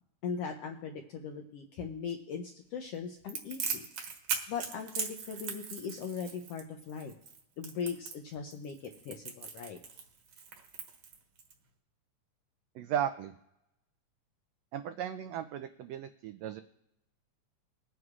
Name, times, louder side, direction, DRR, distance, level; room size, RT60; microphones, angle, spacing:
voice 1, 0.2-3.9 4.5-7.1 7.6-9.8, left 6 dB, 75° left, 3 dB, 1.4 m, -39 dB
Crackle, 3.3-11.5, right 6 dB, 65° right, 2.3 m, -39 dB
voice 2, 12.7-13.3 14.7-16.6, right 10 dB, 85° right, 9 dB, 1.4 m, -35 dB
21.0 x 9.4 x 2.4 m, 0.82 s
omnidirectional pair, 3.5 m